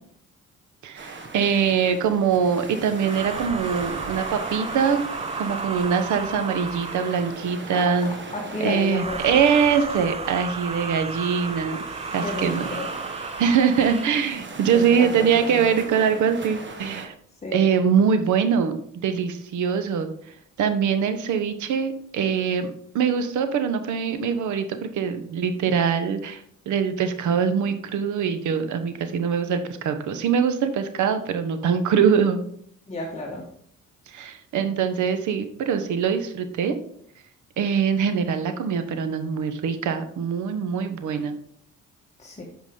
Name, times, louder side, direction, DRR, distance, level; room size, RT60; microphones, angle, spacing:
voice 1, 0.8-5.0 5.4-8.2 8.6-11.8 12.1-12.9 13.4-17.1 17.5-18.8 19.0-20.1 20.6-32.4 34.1-36.7 37.6-41.4, right 7 dB, 75° right, 9 dB, 1.0 m, -23 dB
sound 1, 1.0-17.1, right 3 dB, 40° right, 1.4 m, -39 dB
sound 2, 2.9-7.5 8.9-14.3, right 4 dB, 20° right, 0.6 m, -33 dB
voice 2, 8.3-9.4 12.2-12.9 14.7-15.8 17.4-17.6 32.9-33.5 42.2-42.4, left 2 dB, 20° left, -2 dB, 1.4 m, -32 dB
7.5 x 5.1 x 3.7 m, 0.64 s
cardioid pair, 90°, 30 cm